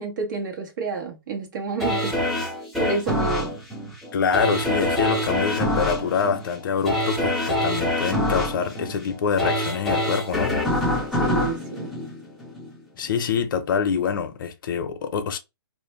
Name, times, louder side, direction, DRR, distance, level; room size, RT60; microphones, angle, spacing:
voice 1, 0.0-2.1 2.8-3.5 11.2-11.9, right 4 dB, 50° right, 1.2 m, -29 dB
sound 1, 1.8-12.8 13.2-13.3, left 1 dB, ahead, 0.6 m, -25 dB
voice 2, 4.1-10.5 13.0-15.4, left 6 dB, 55° left, 0.6 m, -25 dB
2.6 x 2.1 x 3.1 m
hypercardioid pair, 150°, 13 cm